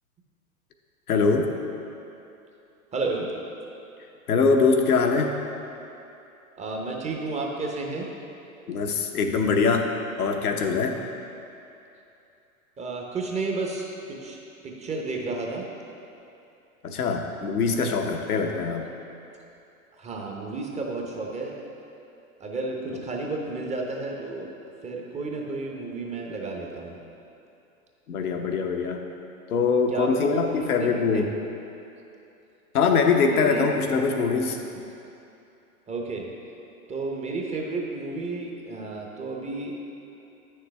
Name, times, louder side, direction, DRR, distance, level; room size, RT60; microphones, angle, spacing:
voice 1, 1.1-1.5 4.3-5.3 8.7-9.9 10.2-11.0 16.8-18.9 28.1-29.1 29.5-31.3 32.7-34.6, left 5 dB, 80° left, 3 dB, 0.9 m, -23 dB
voice 2, 2.9-3.3 6.6-8.1 12.8-14.4 14.6-15.6 20.0-21.6 22.4-24.5 24.8-27.0 29.9-31.2 33.2-33.6 34.7-34.8 35.9-36.3 36.9-39.8, right 3 dB, 15° right, 0 dB, 0.7 m, -32 dB
9.1 x 6.6 x 3.3 m, 2.8 s
hypercardioid pair, 105°, 44 cm